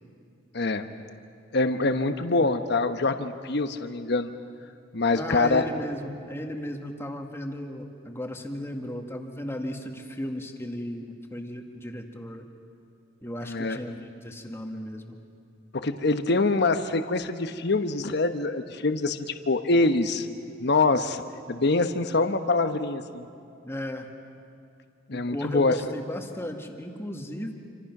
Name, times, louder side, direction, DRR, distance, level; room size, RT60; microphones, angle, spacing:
voice 1, 0.5-0.9 1.5-4.3 4.9-5.6 13.4-13.8 15.7-20.3 20.6-21.2 21.5-23.3 25.1-25.8, left 3 dB, 60° left, 8 dB, 1.1 m, -25 dB
voice 2, 5.1-12.5 13.2-15.2 23.6-24.1 25.1-27.5, equal, 15° left, 3 dB, 1.9 m, -35 dB
27.5 x 26.5 x 6.1 m, 2.5 s
head